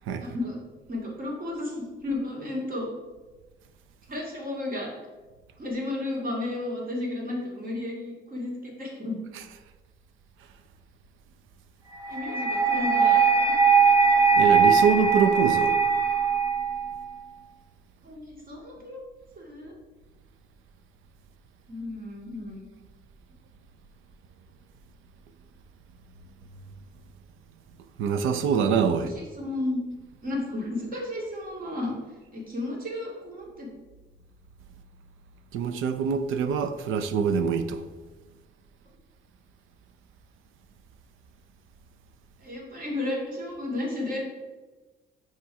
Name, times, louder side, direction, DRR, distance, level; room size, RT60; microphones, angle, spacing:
voice 1, 0.2-0.6 0.9-2.9 4.1-4.9 5.6-9.2 12.1-13.6 18.0-19.0 19.4-19.7 21.7-22.7 29.1-29.8 30.2-32.0 32.3-33.7 42.4-44.2, left 2 dB, 45° right, -2 dB, 2.3 m, -33 dB
sound 1, 12.0-17.1, right 5 dB, 15° right, 1.9 m, -21 dB
voice 2, 14.4-15.8 28.0-29.1 35.5-37.8, right 6 dB, 90° right, 10 dB, 0.6 m, -24 dB
6.0 x 4.5 x 4.7 m, 1.2 s
cardioid pair, 90°, 20 cm